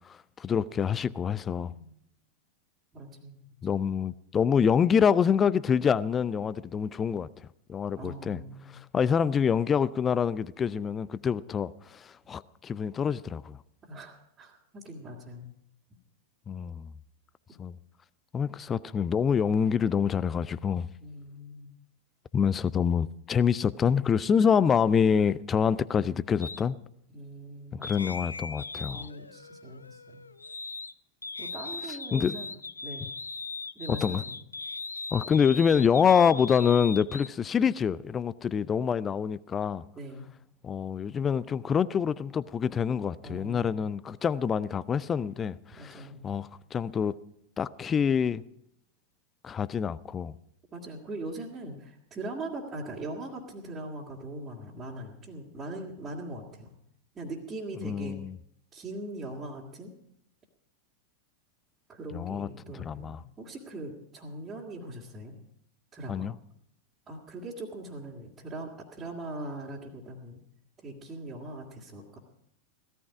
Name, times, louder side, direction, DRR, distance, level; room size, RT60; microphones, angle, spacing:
voice 1, 0.4-1.7 3.6-7.3 7.7-8.4 8.9-13.6 16.5-16.9 17.6-17.7 18.3-20.9 22.3-26.8 27.7-29.1 32.1-32.4 33.9-34.2 35.1-39.8 40.6-47.1 47.6-48.4 49.4-50.3 57.8-58.3 62.1-63.2 66.1-66.3, left 7 dB, 20° left, 0.5 m, -26 dB
voice 2, 1.5-2.0 2.9-3.5 8.0-8.8 13.8-15.5 17.5-17.6 21.0-21.7 27.1-28.1 28.9-30.2 31.4-32.5 32.8-33.1 33.8-34.4 39.9-40.3 43.2-43.8 45.7-46.2 50.7-56.7 57.1-58.2 58.7-59.9 61.9-65.4 65.9-66.3 67.1-70.4 70.8-72.2, right 1 dB, 20° right, 2.2 m, -41 dB
sound 1, 26.4-26.6 27.8-30.9 31.2-37.3, left 3 dB, 80° left, 0.5 m, -39 dB
17.0 x 13.5 x 4.8 m
figure-of-eight pair, 90°, 0 cm